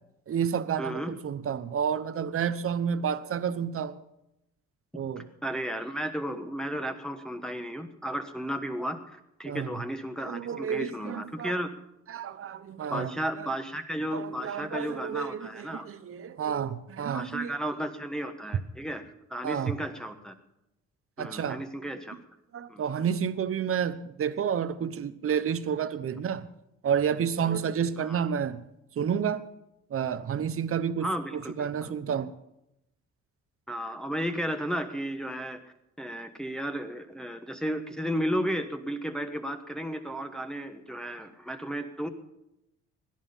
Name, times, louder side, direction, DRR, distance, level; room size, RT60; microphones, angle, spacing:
voice 1, 0.3-4.0 4.9-5.3 9.4-9.7 10.2-11.5 12.1-13.1 13.4-13.5 14.1-17.5 19.4-19.7 21.2-21.6 22.5-26.4 26.8-28.6 29.0-29.4 29.9-31.1 31.3-32.3, right 7 dB, 45° right, 0.9 m, -30 dB
voice 2, 0.8-1.2 5.2-11.7 12.9-15.9 17.1-19.0 19.3-20.3 21.2-22.2 22.7-22.8 28.0-28.2 31.0-31.9 33.7-35.6 36.0-42.1, equal, ahead, 1.2 m, -34 dB
17.5 x 10.5 x 5.6 m
cardioid pair, 90°, 30 cm